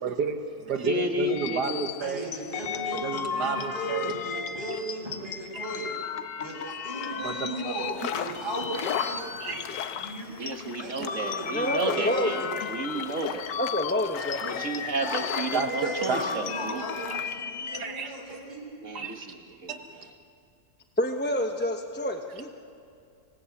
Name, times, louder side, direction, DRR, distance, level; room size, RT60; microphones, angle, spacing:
voice 1, 0.0-2.3 2.9-4.1 7.2-7.8 9.4-9.6 9.9-10.1 11.0-11.1 15.5-16.2 17.7-18.1 18.9-19.3 19.7-20.1, right 5 dB, 70° right, 6 dB, 1.7 m, -31 dB
voice 2, 0.8-1.9 10.4-13.5 14.4-16.9 18.8-19.8, right 1 dB, 45° right, 4 dB, 1.8 m, -32 dB
sound 1, 1.3-10.5 10.9-17.8, left 6 dB, 55° left, 1.1 m, -35 dB
voice 3, 2.0-5.9 6.4-9.6 10.0-10.5 10.8-12.8 15.0-18.6, right 1 dB, 15° right, -5 dB, 7.6 m, -37 dB
sound 2, 7.8-17.3, left 8 dB, 85° left, 1.6 m, -37 dB
voice 4, 11.5-12.4 13.6-14.7 21.0-22.6, left 1 dB, 10° left, 4 dB, 0.7 m, -28 dB
25.0 x 18.5 x 8.5 m, 2.5 s
omnidirectional pair, 1.9 m